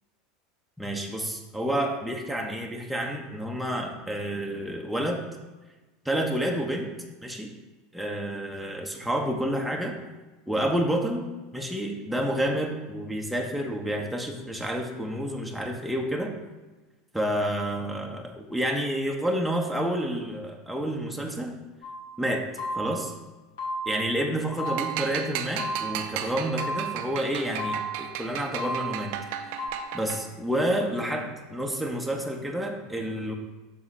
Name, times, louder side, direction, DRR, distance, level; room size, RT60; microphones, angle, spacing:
voice 1, 0.8-5.2 6.0-6.9 7.2-7.5 7.9-10.0 10.5-11.2 11.5-16.3 17.1-21.6 22.2-22.4 22.7-23.1 23.9-29.2 29.9-33.3, right 1 dB, ahead, 0 dB, 0.9 m, -29 dB
sound 1, 21.8-22.1 22.6-23.1 23.6-24.1 24.6-25.1 25.6-26.1 26.6-27.1 27.6-28.2 28.6-29.1 29.6-29.7, right 1 dB, 70° left, 2.3 m, -33 dB
sound 2, 24.6-30.4, right 9 dB, 60° right, 0.6 m, -35 dB
7.1 x 6.4 x 3.3 m, 1.2 s
figure-of-eight pair, 75°, 0 cm